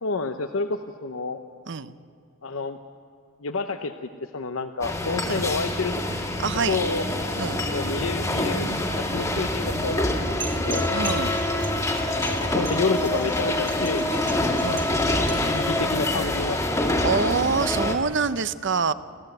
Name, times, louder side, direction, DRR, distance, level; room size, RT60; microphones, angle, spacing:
voice 1, 0.0-1.4 2.4-2.8 3.4-5.9 6.7-7.1 7.7-10.9 12.3-14.2 15.2-17.0, left 4 dB, 80° left, 8 dB, 0.8 m, -29 dB
sound 1, 4.8-18.0, left 1 dB, 15° left, 1.8 m, -26 dB
voice 2, 6.4-6.8 7.4-7.6 10.9-11.3 14.6-14.9 17.0-18.9, right 5 dB, 60° right, 14 dB, 0.7 m, -25 dB
sound 2, 10.4-15.6, right 5 dB, 20° right, 1.5 m, -38 dB
29.0 x 14.0 x 8.0 m, 2.5 s
head